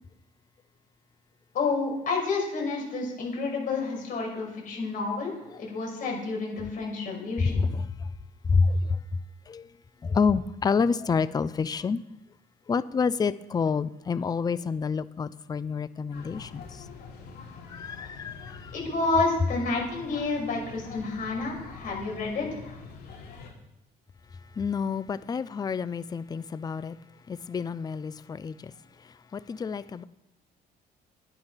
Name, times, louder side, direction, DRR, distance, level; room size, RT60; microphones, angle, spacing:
voice 1, 1.5-7.6 18.7-22.6, left 3 dB, 55° left, -1 dB, 5.8 m, -29 dB
voice 2, 7.4-8.1 8.5-9.0 9.5-9.7 10.0-12.0 12.7-16.8 17.7-18.8 24.6-27.0 27.3-28.7 29.3-30.0, left 5 dB, 25° left, 15 dB, 0.5 m, -28 dB
sound 1, 16.1-23.5, left 5 dB, 70° left, 3.6 m, -45 dB
12.0 x 10.5 x 5.8 m, 0.90 s
cardioid pair, 110°, 17 cm